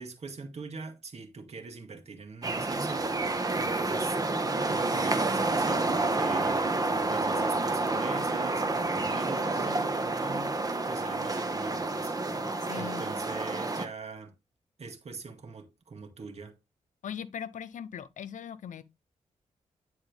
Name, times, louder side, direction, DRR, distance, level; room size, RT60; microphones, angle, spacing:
voice 1, 0.0-4.2 4.7-6.7 7.1-10.6 10.9-12.2 12.8-14.3 14.8-16.6, right 4 dB, 55° right, 2.1 m, -43 dB
sound 1, 2.4-13.8, right 2 dB, 30° right, 1.4 m, -29 dB
voice 2, 12.7-13.0 17.0-18.8, left 8 dB, 80° left, 0.8 m, -39 dB
10.5 x 4.3 x 3.5 m
cardioid pair, 70°, 13 cm